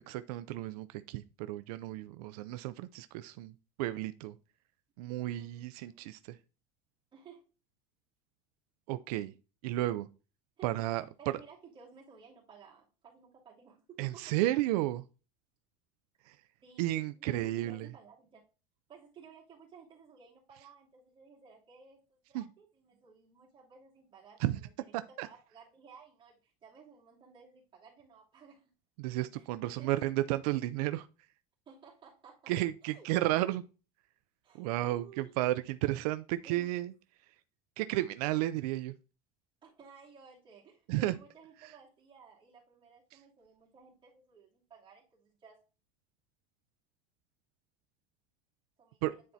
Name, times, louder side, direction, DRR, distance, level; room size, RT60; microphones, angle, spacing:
voice 1, 0.1-4.4 5.0-6.4 8.9-9.3 9.6-10.1 10.6-11.4 14.0-15.0 16.3-16.4 16.8-17.9 22.3-22.4 24.4-24.6 25.2-25.3 29.0-31.1 32.5-33.6 34.6-36.9 37.8-39.0 40.9-41.2 49.0-49.1, right 15 dB, 90° right, 0.4 m, -33 dB
voice 2, 5.2-6.2 7.1-7.4 10.6-13.8 14.1-14.3 16.6-18.4 18.9-28.7 29.3-30.0 31.7-32.5 32.8-33.1 34.4-35.3 36.4-36.7 39.6-45.6 48.8-49.2, right 5 dB, 25° right, 2.8 m, -57 dB
9.5 x 4.4 x 2.7 m
cardioid pair, 160°, 19 cm